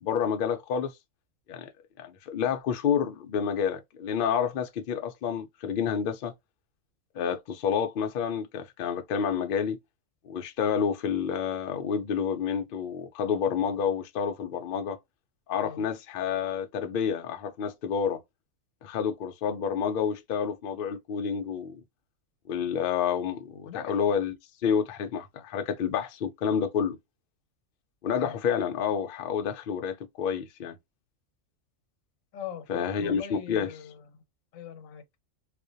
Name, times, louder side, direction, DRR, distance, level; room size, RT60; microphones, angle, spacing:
voice 1, 0.0-0.9 1.5-1.7 2.0-6.3 7.2-9.8 10.2-15.0 15.5-18.2 18.8-21.8 22.5-24.3 24.6-27.0 28.0-30.8 32.7-33.7, left 7 dB, 65° left, 0.5 m, -29 dB
voice 2, 23.6-24.0 28.1-28.4 32.3-34.0 34.5-35.2, left 9 dB, 90° left, 1.1 m, -41 dB
2.4 x 2.1 x 2.5 m
omnidirectional pair, 1.4 m